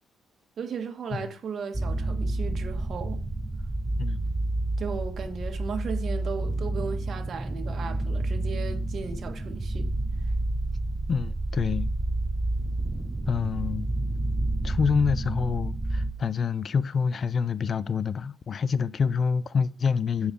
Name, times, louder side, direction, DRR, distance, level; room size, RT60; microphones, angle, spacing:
voice 1, 0.6-3.3 4.8-9.9, right 5 dB, 55° right, 1.6 m, -36 dB
sound 1, 1.7-16.1, right 2 dB, 20° right, 0.6 m, -29 dB
voice 2, 11.1-11.9 13.3-13.9 14.6-20.3, left 6 dB, 50° left, 0.4 m, -27 dB
7.1 x 5.0 x 6.7 m
cardioid pair, 90°, 0 cm